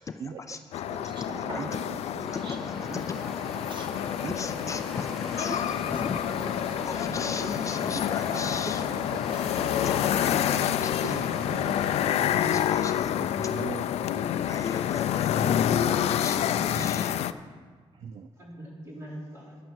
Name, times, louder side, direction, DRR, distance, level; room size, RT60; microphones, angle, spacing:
voice 1, 0.2-0.6 0.9-1.2 1.6-2.6 2.9-3.1 3.5-4.7 5.1-6.0 6.4-9.8 11.0-11.8 13.4-13.8 17.9-18.3, right 6 dB, 50° right, 8 dB, 0.5 m, -43 dB
sound 1, 0.7-17.3, left 10 dB, 85° left, 0.4 m, -28 dB
sound 2, 0.8-2.7 3.2-7.8, right 1 dB, 90° right, 3.5 m, -46 dB
voice 2, 1.0-2.5 2.9-3.3 3.7-6.2 6.8-8.8 9.8-11.2 12.5-13.6 14.5-17.1, left 5 dB, 30° left, 8 dB, 0.5 m, -37 dB
sound 3, 2.2-12.3, left 1 dB, 5° left, 1.6 m, -40 dB
voice 3, 8.3-8.9 12.2-12.6 14.7-14.9 16.5-16.7 18.4-19.6, right 1 dB, 25° right, -4 dB, 3.4 m, -43 dB
11.0 x 9.1 x 7.2 m, 1.5 s
cardioid pair, 160°, 10 cm